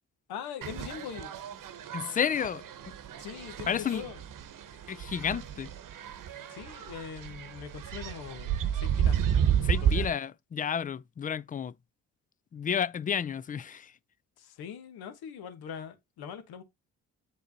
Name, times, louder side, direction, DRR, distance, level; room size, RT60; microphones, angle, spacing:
voice 1, 0.3-1.3 3.2-4.2 6.5-9.2 9.7-10.1 14.4-16.6, left 8 dB, 70° left, 1.4 m, -42 dB
sound 1, 0.6-10.1, right 9 dB, 55° right, 1.0 m, -31 dB
voice 2, 1.9-2.9 3.7-4.0 4.9-5.7 9.6-11.7 12.5-14.0, left 8 dB, 25° left, 0.4 m, -31 dB
7.6 x 3.4 x 4.0 m
hypercardioid pair, 55°, 39 cm